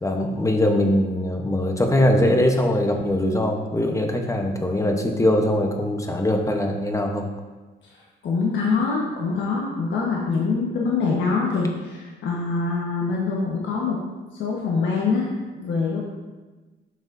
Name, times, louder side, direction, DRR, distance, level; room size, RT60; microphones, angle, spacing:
voice 1, 0.0-7.3, left 1 dB, 15° left, 3 dB, 1.0 m, -21 dB
voice 2, 8.2-14.0 14.4-16.0, left 4 dB, 70° left, -3 dB, 1.3 m, -24 dB
9.0 x 6.2 x 2.7 m, 1.3 s
cardioid pair, 90°, 20 cm